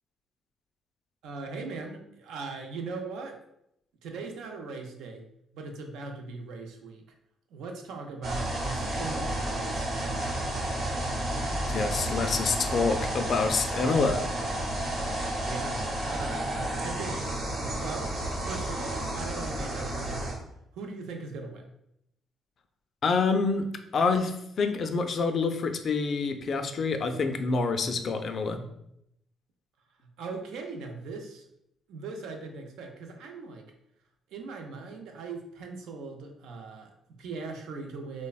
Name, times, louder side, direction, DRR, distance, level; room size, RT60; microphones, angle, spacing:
voice 1, 1.2-3.4 4.0-5.2 5.5-7.0 7.5-10.4 14.9-16.5 16.8-17.3 17.8-18.1 18.4-20.4 20.7-21.7 30.2-31.5 31.9-33.7 34.3-38.3, right 4 dB, 90° right, 3 dB, 0.4 m, -39 dB
sound 1, 8.2-20.3, right 1 dB, 60° right, 0.8 m, -31 dB
voice 2, 11.7-14.2 23.0-23.7 23.9-28.6, left 4 dB, 55° left, 7 dB, 0.3 m, -27 dB
3.3 x 2.0 x 2.3 m, 0.78 s
cardioid pair, 90°, 0 cm